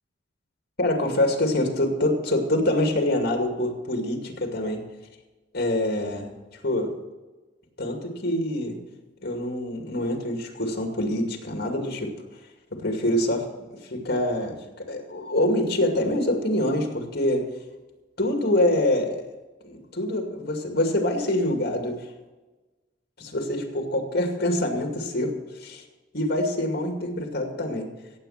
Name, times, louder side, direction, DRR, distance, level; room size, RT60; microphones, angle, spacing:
voice 1, 0.8-4.8 5.5-6.4 6.6-6.9 7.8-8.8 9.2-12.1 12.7-13.5 13.8-17.4 18.2-19.3 19.6-22.1 23.2-25.8 26.1-27.9, left 1 dB, 55° left, 3 dB, 2.4 m, -25 dB
16.5 x 7.6 x 5.8 m, 1.2 s
head